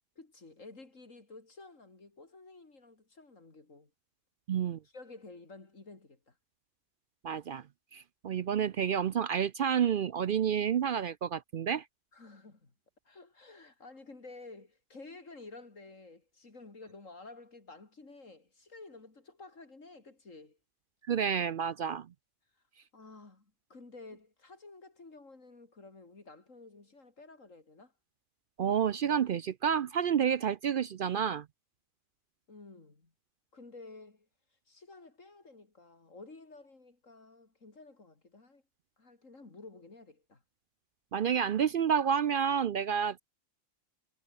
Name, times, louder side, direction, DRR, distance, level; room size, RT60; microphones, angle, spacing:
voice 1, 0.2-3.9 4.9-6.4 12.1-12.7 13.1-20.6 22.9-27.9 32.5-33.1 33.5-34.3 34.7-38.6 39.0-40.4, left 3 dB, 75° left, 3.8 m, -52 dB
voice 2, 4.5-4.8 7.2-7.6 7.9-11.8 21.1-22.1 28.6-31.5 41.1-43.2, right 8 dB, 60° right, 0.6 m, -29 dB
omnidirectional pair, 1.4 m